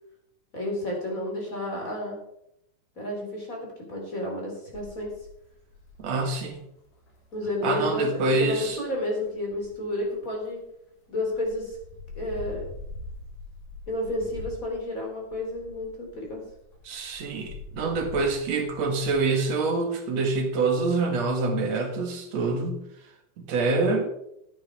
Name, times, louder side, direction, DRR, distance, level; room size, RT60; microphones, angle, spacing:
voice 1, 0.5-2.2 3.0-5.1 7.3-10.6 11.1-11.8 12.1-12.7 13.9-16.4, left 1 dB, 25° left, -1 dB, 3.7 m, -31 dB
sound 1, 4.7-10.7 11.2-19.2, left 2 dB, 75° left, 4.7 m, -44 dB
voice 2, 6.0-6.6 7.6-8.8 16.8-22.8 23.4-24.1, right 3 dB, 60° right, 4 dB, 2.7 m, -26 dB
13.0 x 9.5 x 4.8 m, 0.78 s
omnidirectional pair, 3.8 m